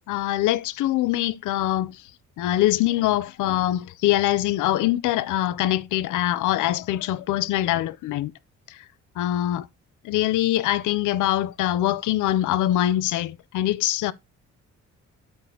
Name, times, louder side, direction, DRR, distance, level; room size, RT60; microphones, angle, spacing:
voice 1, 0.1-2.0 2.4-8.3 8.7-8.8 9.2-9.7 10.0-14.1, left 14 dB, 85° left, 0.6 m, -23 dB
12.0 x 4.5 x 2.8 m
cardioid pair, 90°, 30 cm